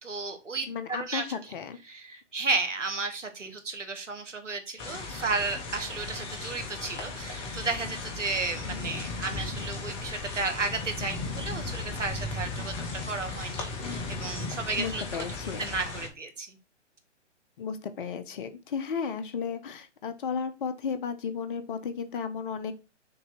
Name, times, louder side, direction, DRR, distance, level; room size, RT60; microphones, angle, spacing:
voice 1, 0.0-1.4 1.9-15.2 15.6-16.6, right 3 dB, 85° right, 6 dB, 1.7 m, -33 dB
voice 2, 0.7-1.8 14.8-15.7 17.6-22.7, left 6 dB, 45° left, 10 dB, 0.9 m, -34 dB
sound 1, 4.8-16.1, left 3 dB, 15° left, 0.8 m, -36 dB
6.5 x 2.9 x 5.6 m, 0.29 s
figure-of-eight pair, 135°, 36 cm